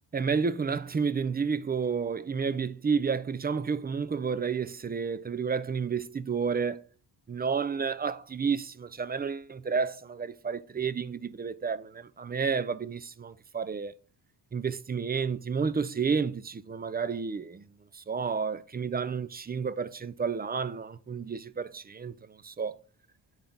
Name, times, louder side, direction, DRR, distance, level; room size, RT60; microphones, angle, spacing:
voice 1, 0.1-6.8 7.3-13.9 14.5-17.6 17.9-22.8, right 5 dB, 20° right, 0.4 m, -31 dB
8.7 x 4.1 x 5.3 m
cardioid pair, 85°, 45 cm